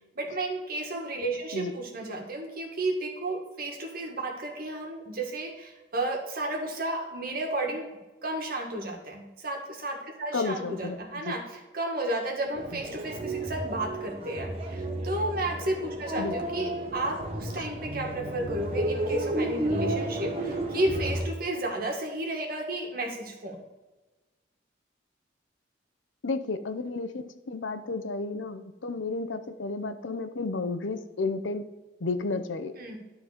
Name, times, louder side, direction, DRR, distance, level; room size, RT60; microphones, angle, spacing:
voice 1, 0.1-7.9 8.2-23.5 32.7-33.0, right 1 dB, 50° right, 1 dB, 1.8 m, -32 dB
voice 2, 10.3-11.3 16.2-16.3 17.6-17.7 26.2-31.6 32.0-32.7, left 3 dB, 90° left, 10 dB, 0.7 m, -32 dB
sound 1, 12.5-21.3, right 1 dB, 30° right, 1.2 m, -32 dB
12.0 x 4.1 x 5.0 m, 1.2 s
head